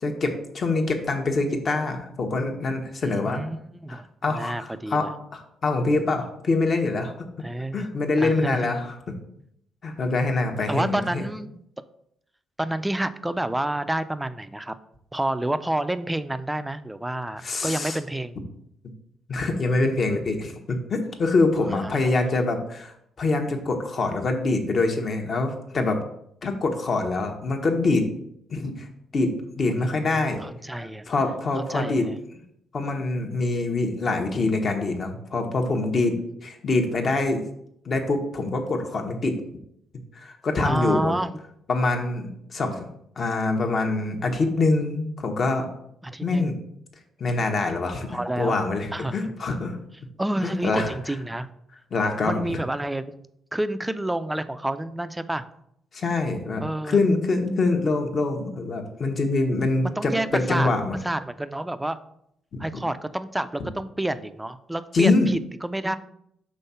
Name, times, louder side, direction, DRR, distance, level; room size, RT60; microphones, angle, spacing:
voice 1, 0.0-3.4 4.2-5.1 5.3-7.1 7.7-8.9 9.8-11.2 17.4-18.0 19.3-26.0 26.4-28.0 28.5-28.9 29.1-30.4 31.1-32.1 32.7-37.4 37.8-39.4 40.1-41.1 41.7-42.8 43.2-45.7 46.2-46.6 47.2-49.8 50.4-50.9 51.9-52.6 55.9-61.0 62.5-62.8 64.9-65.3, left 3 dB, 45° left, 4 dB, 1.1 m, -25 dB
voice 2, 3.0-5.1 7.4-7.9 8.2-8.7 10.7-11.6 12.6-14.8 15.1-18.4 21.6-22.3 29.7-31.1 31.7-32.2 40.6-41.3 46.0-46.5 48.1-48.6 48.9-49.4 50.2-51.5 52.3-53.0 53.5-55.5 56.6-57.0 59.8-60.7 61.0-62.0 62.6-66.0, right 1 dB, 10° right, 12 dB, 0.4 m, -29 dB
5.5 x 3.6 x 5.6 m, 0.74 s
cardioid pair, 90°, 0 cm